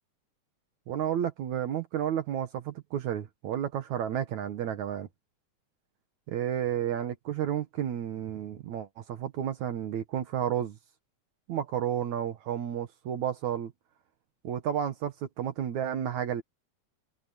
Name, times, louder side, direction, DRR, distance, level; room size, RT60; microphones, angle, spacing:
voice 1, 0.9-5.1 6.3-10.8 11.5-13.7 14.4-16.4, right 10 dB, 70° right, 2.6 m, -31 dB
omnidirectional pair, 3.5 m